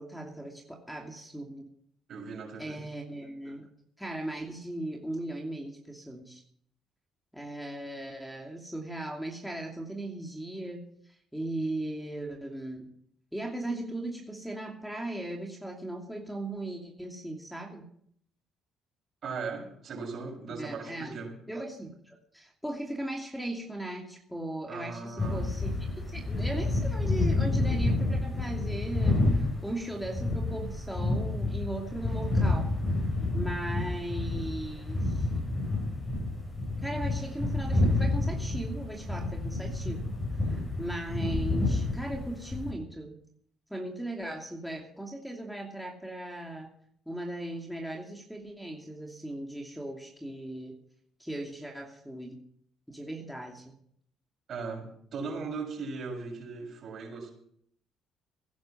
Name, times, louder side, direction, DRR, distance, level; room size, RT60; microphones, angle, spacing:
voice 1, 0.0-1.7 2.6-3.7 4.0-6.4 7.3-10.8 11.3-12.9 13.3-17.8 20.5-21.2 21.5-32.7 33.3-35.3 36.8-43.1 43.7-46.7 47.1-50.7 51.2-52.4 52.9-53.7, right 1 dB, ahead, 2 dB, 2.8 m, -38 dB
voice 2, 2.1-2.8 19.2-21.3 24.7-25.5 54.5-57.3, right 4 dB, 55° right, 1 dB, 6.8 m, -38 dB
sound 1, 25.2-42.7, left 2 dB, 30° left, 7.9 m, -29 dB
17.0 x 10.5 x 6.0 m, 0.66 s
cardioid pair, 85°, 0 cm